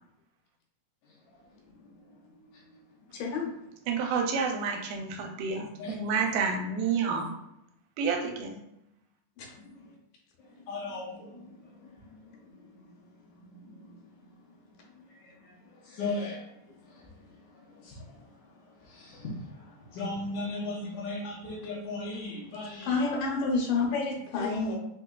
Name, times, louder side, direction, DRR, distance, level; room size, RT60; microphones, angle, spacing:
voice 1, 3.1-3.5 9.4-9.5 22.8-24.8, left 4 dB, 90° left, 0 dB, 2.4 m, -29 dB
voice 2, 3.9-7.4 8.0-8.6, right 5 dB, 85° right, 2 dB, 2.2 m, -29 dB
voice 3, 10.6-11.4 15.9-16.4 17.9-18.0 19.9-23.1 24.7-24.8, left 2 dB, 75° left, -4 dB, 2.0 m, -35 dB
5.4 x 2.2 x 2.3 m, 0.81 s
omnidirectional pair, 3.8 m